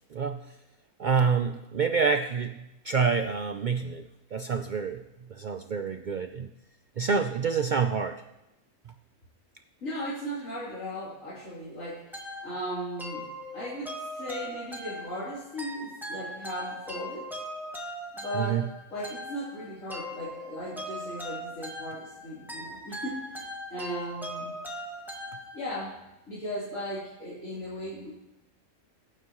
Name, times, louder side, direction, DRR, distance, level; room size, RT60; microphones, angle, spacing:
voice 1, 0.1-0.4 1.0-2.6 2.8-5.0 5.3-6.5 7.0-8.2 18.3-18.6, right 5 dB, 85° right, 7 dB, 0.4 m, -27 dB
voice 2, 9.8-17.3 18.1-24.5 25.5-25.9 26.3-28.1, equal, 65° left, -10 dB, 3.8 m, -37 dB
sound 1, 12.1-25.9, equal, ahead, 1.7 m, -40 dB
23.0 x 9.2 x 3.0 m, 0.94 s
omnidirectional pair, 1.5 m